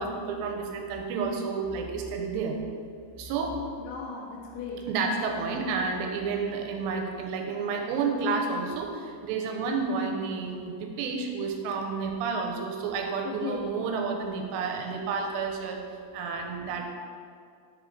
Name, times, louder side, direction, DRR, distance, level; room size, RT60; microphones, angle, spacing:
voice 1, 0.0-2.6 3.2-3.6 4.9-15.8 16.1-17.0, right 4 dB, 90° right, 3 dB, 2.8 m, -30 dB
voice 2, 3.8-4.8 13.2-13.7, left 5 dB, 85° left, -1 dB, 2.3 m, -37 dB
5.1 x 4.9 x 3.8 m, 2.2 s
omnidirectional pair, 4.8 m